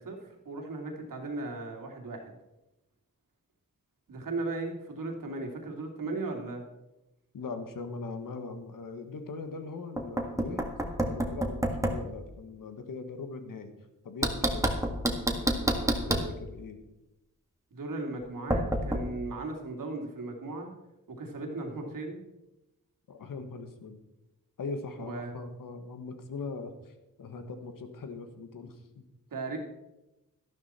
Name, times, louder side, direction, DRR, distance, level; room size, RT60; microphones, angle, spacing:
voice 1, 0.0-2.3 4.1-6.6 17.7-20.7 21.1-22.2 25.1-25.3 29.3-29.6, right 3 dB, 85° right, 2 dB, 2.5 m, -37 dB
voice 2, 7.3-13.7 14.0-14.7 15.2-16.8 23.1-24.0 24.6-29.0, left 4 dB, 90° left, 8 dB, 1.5 m, -41 dB
Knock, 10.0-12.1 14.2-16.3 18.5-19.0, right 1 dB, 10° right, 1.9 m, -28 dB
12.5 x 12.0 x 4.3 m, 0.95 s
cardioid pair, 80°, 32 cm